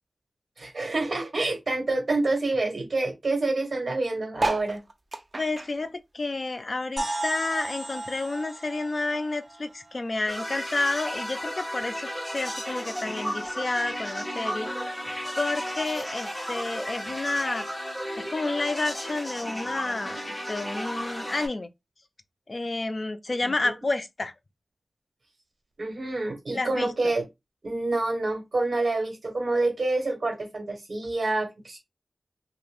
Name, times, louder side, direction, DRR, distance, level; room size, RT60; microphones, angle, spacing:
voice 1, 0.6-4.8 25.8-27.2 27.6-31.8, right 2 dB, 60° right, 1.3 m, -27 dB
sound 1, 4.3-7.1 7.4-9.0 9.5-9.6 9.7-9.8 10.0-10.4 11.2-11.3, right 2 dB, 45° right, 0.5 m, -33 dB
voice 2, 5.4-14.7 15.4-17.7 18.2-21.7 22.5-24.3 26.5-27.1, left 2 dB, 50° left, 0.4 m, -30 dB
sound 2, 7.0-10.7, right 2 dB, 20° right, 1.0 m, -36 dB
sound 3, 10.3-21.5, equal, 15° left, 1.3 m, -34 dB
2.8 x 2.4 x 3.4 m
wide cardioid pair, 90°, 0 cm